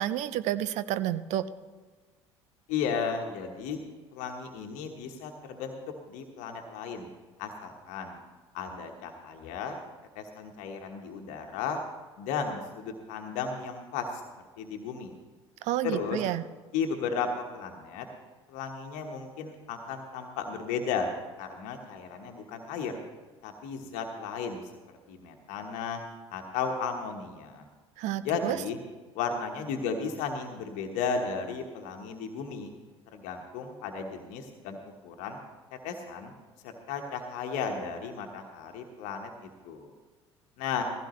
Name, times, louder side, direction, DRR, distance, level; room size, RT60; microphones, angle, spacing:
voice 1, 0.0-1.4 15.6-16.4 28.0-28.6, right 13 dB, 50° right, 14 dB, 0.6 m, -30 dB
voice 2, 2.7-3.8 4.1-5.7 6.1-7.1 7.4-8.2 8.5-9.8 10.1-11.8 12.2-14.2 14.6-15.2 15.8-16.2 16.7-18.1 18.5-23.0 23.4-24.6 25.1-26.0 26.3-27.6 28.2-28.8 29.1-32.7 33.1-34.8 35.0-35.4 35.8-36.3 36.6-39.3 39.6-39.9 40.6-40.8, left 5 dB, 55° left, 3 dB, 1.3 m, -34 dB
16.0 x 15.5 x 3.1 m, 1.3 s
figure-of-eight pair, 60°, 15 cm